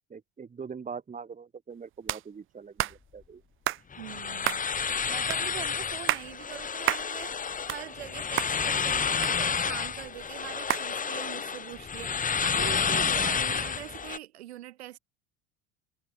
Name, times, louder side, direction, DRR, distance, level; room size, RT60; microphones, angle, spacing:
voice 1, 0.1-3.4, right 6 dB, 25° right, 3.0 m, -42 dB
sound 1, 2.1-2.2 2.8-3.0 3.7-3.8 4.4-4.7 5.3-5.4 5.9-6.3 6.9-7.1 7.5-8.1 8.4-8.5 9.2-9.8 10.7-10.9, right 15 dB, 40° right, 0.6 m, -29 dB
sound 2, 3.9-14.2, left 6 dB, 25° left, 2.5 m, -30 dB
voice 2, 4.0-15.0, right 14 dB, 85° right, 7.4 m, -43 dB
hypercardioid pair, 85°, 31 cm